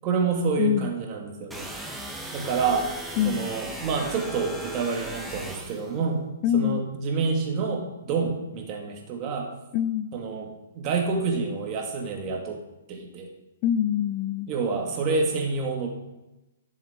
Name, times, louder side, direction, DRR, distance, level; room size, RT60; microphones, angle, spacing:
voice 1, 0.0-1.7 2.3-2.9 3.2-6.2 6.5-9.5 10.1-12.6 12.9-13.3 14.5-15.9, right 4 dB, 35° right, 1 dB, 2.0 m, -28 dB
voice 2, 0.6-1.0 3.2-3.5 6.4-6.8 9.7-10.1 13.6-14.5, left 10 dB, 35° left, 14 dB, 0.3 m, -25 dB
sound 1, 1.5-5.9, right 1 dB, 5° right, 1.0 m, -37 dB
11.0 x 7.2 x 3.7 m, 0.99 s
hypercardioid pair, 135°, 0 cm